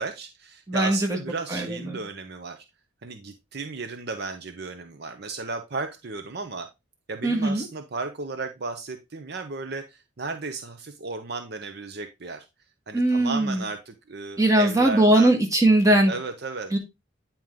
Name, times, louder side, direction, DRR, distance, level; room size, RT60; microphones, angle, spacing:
voice 1, 0.0-2.6 3.0-6.7 7.1-12.5 12.9-15.3 16.1-16.8, right 3 dB, 55° right, 7 dB, 0.8 m, -34 dB
voice 2, 0.7-1.2 1.5-2.0 7.2-7.7 12.9-13.6 14.4-16.1 16.7-16.8, right 1 dB, 15° right, 1 dB, 1.8 m, -20 dB
9.2 x 4.5 x 3.7 m, 0.23 s
head